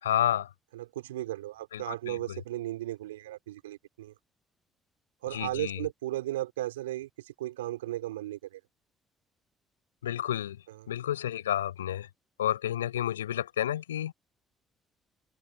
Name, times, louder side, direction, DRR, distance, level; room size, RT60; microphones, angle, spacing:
voice 1, 0.0-0.5 1.7-2.4 5.3-5.9 10.0-12.1 12.4-14.1, left 11 dB, 85° left, 5.4 m, -31 dB
voice 2, 0.7-4.1 5.2-8.6 10.7-10.8, right 15 dB, 80° right, 4.7 m, -36 dB
open air
figure-of-eight pair, 50°, 0 cm